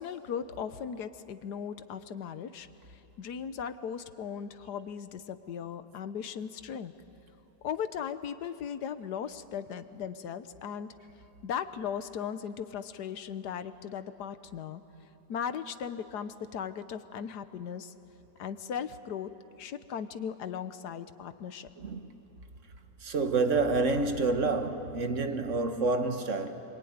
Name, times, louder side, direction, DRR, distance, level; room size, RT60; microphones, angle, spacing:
voice 1, 0.0-6.9 7.6-10.9 11.4-14.8 15.3-17.9 18.4-19.3 19.6-21.7, left 8 dB, 65° left, 1.4 m, -37 dB
voice 2, 21.8-22.1 23.0-26.6, right 3 dB, 45° right, 1.6 m, -28 dB
27.0 x 23.0 x 9.5 m
omnidirectional pair, 1.9 m